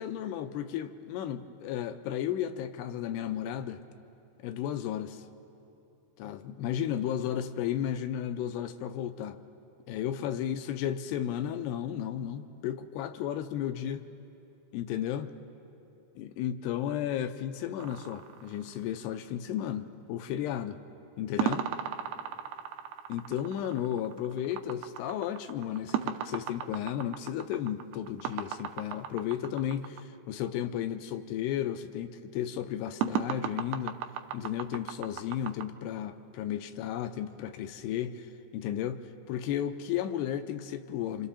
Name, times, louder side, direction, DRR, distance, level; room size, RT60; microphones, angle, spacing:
voice 1, 0.0-3.8 4.4-5.2 6.2-9.4 9.9-14.1 14.7-15.3 16.2-20.8 21.2-21.7 23.1-34.0 34.3-41.3, left 10 dB, 85° left, 9 dB, 2.8 m, -34 dB
sound 1, 17.8-19.2 21.4-30.0 33.0-35.7, right 10 dB, 85° right, 2.8 m, -36 dB
30.0 x 26.5 x 4.3 m, 2.7 s
omnidirectional pair, 4.8 m